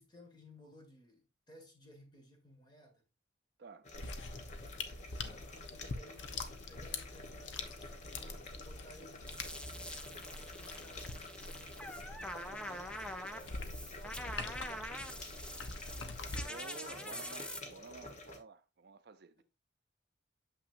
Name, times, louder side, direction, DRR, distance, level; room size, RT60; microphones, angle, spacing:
voice 1, 0.0-3.0 5.2-15.2 17.0-17.2 19.4-19.5, left 1 dB, 25° left, 1.8 m, -59 dB
voice 2, 3.6-3.9 16.5-19.4, right 5 dB, 60° right, 0.5 m, -52 dB
sound 1, 3.8-18.4, left 2 dB, 40° left, 1.2 m, -51 dB
sound 2, 3.9-16.4, left 3 dB, 85° left, 0.8 m, -45 dB
sound 3, 9.3-17.6, equal, 5° left, 0.6 m, -45 dB
6.9 x 5.8 x 2.5 m
head